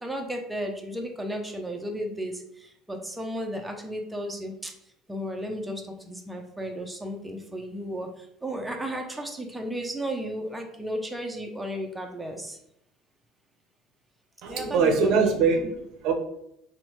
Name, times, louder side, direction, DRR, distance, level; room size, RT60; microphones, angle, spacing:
voice 1, 0.0-4.7 5.1-12.6 14.5-15.4, equal, 5° right, 2 dB, 0.4 m, -34 dB
voice 2, 14.4-16.1, right 4 dB, 65° right, 4 dB, 0.5 m, -23 dB
2.9 x 2.0 x 2.9 m, 0.77 s
supercardioid pair, 105°, 0 cm